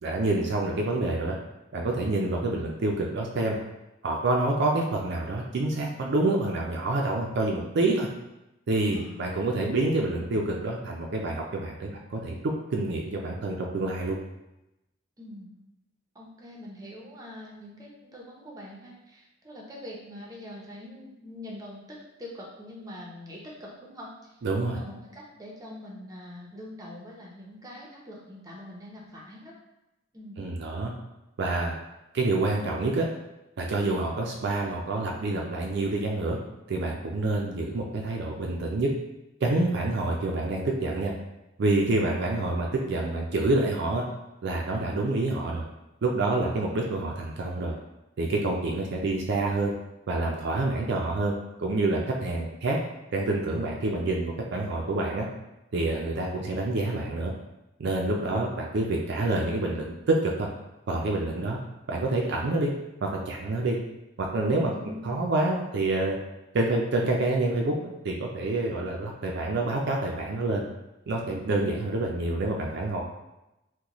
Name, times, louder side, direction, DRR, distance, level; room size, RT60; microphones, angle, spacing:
voice 1, 0.0-1.4 1.7-3.6 4.0-8.1 8.7-12.4 12.7-14.2 24.4-24.8 30.4-30.9 31.4-31.7 32.1-33.1 33.6-36.4 36.7-38.9 39.4-41.1 41.6-44.0 44.4-45.6 46.0-47.8 48.2-49.7 50.1-51.3 51.6-52.8 53.1-55.3 55.7-57.3 57.8-60.5 60.9-61.6 61.9-62.7 63.0-63.8 64.3-64.7 65.0-66.2 66.5-67.7 68.0-70.7 71.1-73.0, right 2 dB, 60° right, 0 dB, 0.4 m, -27 dB
voice 2, 8.9-9.3 15.2-15.5 16.1-24.3 24.6-29.5 30.1-30.4 58.2-58.5 64.7-65.2, left 1 dB, 20° right, -3 dB, 0.6 m, -44 dB
3.9 x 2.2 x 2.9 m, 0.94 s
head